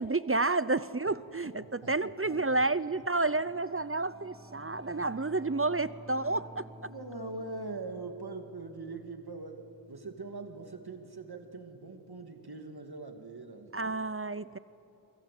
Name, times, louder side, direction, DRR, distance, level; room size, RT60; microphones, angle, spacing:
voice 1, 0.0-6.6 13.7-14.6, right 3 dB, 30° right, 16 dB, 0.6 m, -30 dB
voice 2, 1.4-1.9 2.3-2.6 6.9-13.9, right 3 dB, 60° right, 5 dB, 2.2 m, -42 dB
Singing / Musical instrument, 2.4-12.0, equal, 10° right, 3.8 m, -53 dB
29.0 x 23.0 x 8.4 m, 2.9 s
wide cardioid pair, 50°, 42 cm